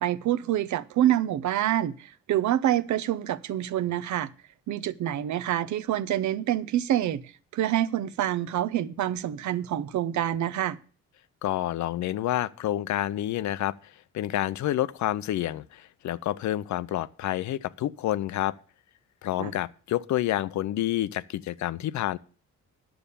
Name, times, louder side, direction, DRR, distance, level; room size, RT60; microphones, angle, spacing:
voice 1, 0.0-4.3 4.7-7.2 7.5-10.8 19.4-19.5, right 12 dB, 70° right, 0.7 m, -26 dB
voice 2, 11.4-18.5 19.2-22.2, left 13 dB, 70° left, 0.6 m, -29 dB
10.0 x 6.9 x 6.9 m
cardioid pair, 90°, 30 cm